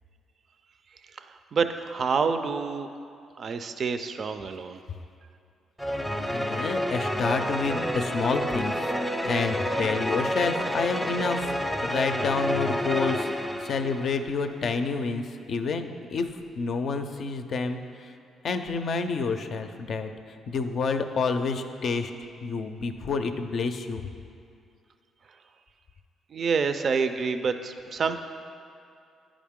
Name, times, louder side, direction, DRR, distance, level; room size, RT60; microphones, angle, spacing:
voice 1, 1.1-2.9 3.4-4.8 26.3-28.2, right 5 dB, 50° right, 9 dB, 0.4 m, -28 dB
sound 1, 5.8-14.3, equal, ahead, 0.6 m, -29 dB
voice 2, 6.3-8.9 9.2-11.5 11.8-13.3 13.6-16.3 16.6-18.1 18.4-20.1 20.5-22.1 22.4-24.1, left 4 dB, 60° left, 7 dB, 0.5 m, -29 dB
10.0 x 5.0 x 3.6 m, 2.5 s
cardioid pair, 90°, 0 cm